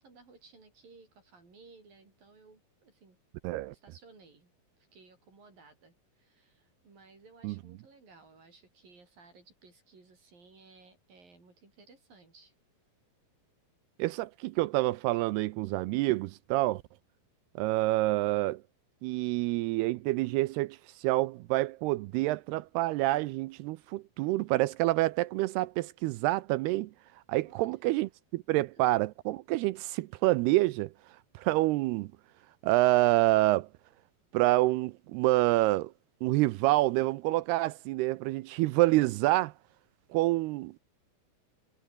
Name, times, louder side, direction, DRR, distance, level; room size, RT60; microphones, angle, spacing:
voice 1, 0.0-3.2 3.7-4.5 4.8-12.5 27.4-27.8 28.7-28.9, right 4 dB, 55° right, 9.0 m, -58 dB
voice 2, 3.4-3.7 7.4-7.5 14.0-16.8 17.6-18.6 19.0-26.9 27.3-28.1 28.5-30.9 31.4-32.1 32.6-33.7 34.3-35.9 36.2-39.5 40.1-40.7, right 18 dB, 80° right, 2.5 m, -27 dB
omnidirectional pair, 4.8 m